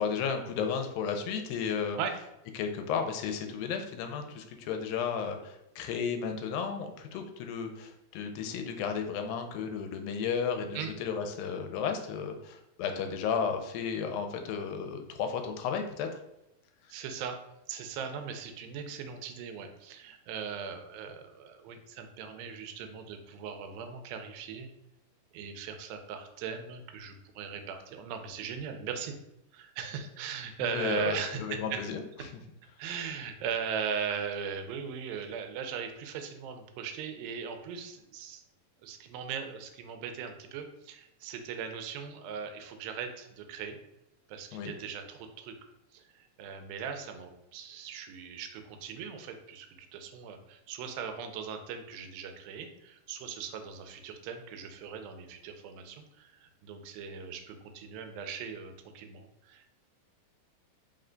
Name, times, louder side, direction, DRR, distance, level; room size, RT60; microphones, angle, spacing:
voice 1, 0.0-2.0 2.5-16.2 30.6-32.0 44.5-44.7, left 6 dB, 85° left, 5 dB, 2.3 m, -33 dB
voice 2, 16.9-17.4 17.7-24.7 25.3-29.2 29.5-31.8 32.8-38.4 38.8-43.8 44.3-45.5 45.9-59.7, right 7 dB, 85° right, 6 dB, 2.4 m, -39 dB
5.4 x 2.2 x 3.7 m, 0.87 s
omnidirectional pair, 4.1 m